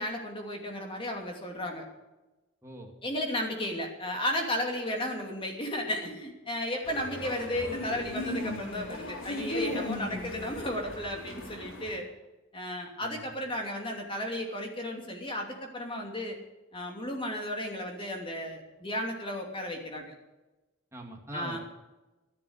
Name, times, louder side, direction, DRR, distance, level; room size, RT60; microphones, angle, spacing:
voice 1, 0.0-1.8 3.0-12.1 12.5-16.4 16.7-20.1 21.3-21.6, left 1 dB, 25° left, 2 dB, 2.7 m, -34 dB
voice 2, 2.6-3.0 10.1-10.4 13.0-13.3 20.9-21.6, right 1 dB, 15° right, -1 dB, 2.3 m, -43 dB
sound 1, 6.8-12.0, left 1 dB, 75° left, 3.9 m, -37 dB
12.5 x 11.0 x 8.0 m, 1.1 s
head